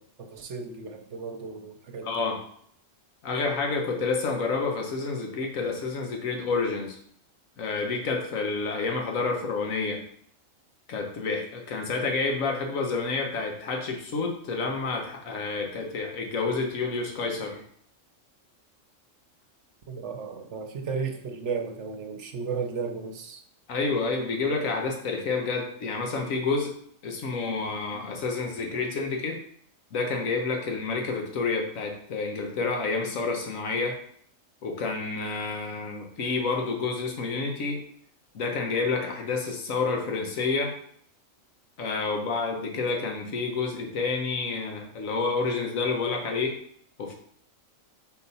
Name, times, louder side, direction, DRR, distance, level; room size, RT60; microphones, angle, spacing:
voice 1, 0.0-2.1 19.9-23.4, right 5 dB, 65° right, 5 dB, 1.1 m, -34 dB
voice 2, 2.0-2.4 3.2-7.0 7.6-10.0 10.9-17.6 23.7-26.7 27.0-29.4 29.9-34.0 34.6-37.8 38.3-40.7 41.8-46.6 47.0-47.1, left 4 dB, 85° left, 2 dB, 1.4 m, -29 dB
4.6 x 4.1 x 5.3 m, 0.64 s
omnidirectional pair, 1.4 m